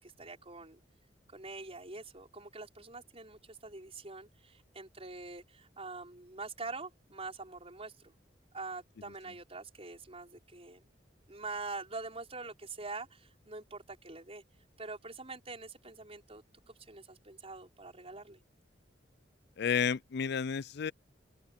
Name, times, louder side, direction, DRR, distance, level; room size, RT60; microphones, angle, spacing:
voice 1, 0.0-0.8 1.3-8.1 8.5-10.8 11.3-14.4 14.8-18.4, right 3 dB, 35° right, 5.3 m, -45 dB
voice 2, 19.6-20.9, left 7 dB, 65° left, 0.4 m, -31 dB
open air
head